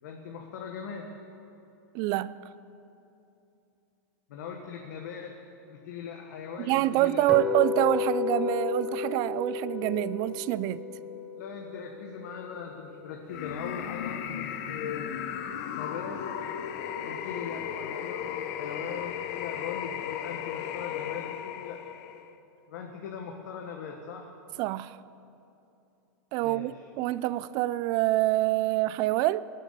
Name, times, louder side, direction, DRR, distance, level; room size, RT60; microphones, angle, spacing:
voice 1, 0.0-1.1 4.3-5.4 5.7-7.3 11.3-15.1 15.7-16.2 17.0-21.8 22.7-24.3 26.4-26.7, left 6 dB, 70° left, 1.4 m, -39 dB
voice 2, 1.9-2.3 6.6-10.8 24.6-25.0 26.3-26.7 27.0-29.4, right 16 dB, 40° right, 0.4 m, -26 dB
sound 1, 7.3-13.4, left 5 dB, 5° right, 0.9 m, -33 dB
sound 2, 13.3-22.3, left 9 dB, 55° left, 0.8 m, -36 dB
19.0 x 7.4 x 6.8 m
supercardioid pair, 135°, 10 cm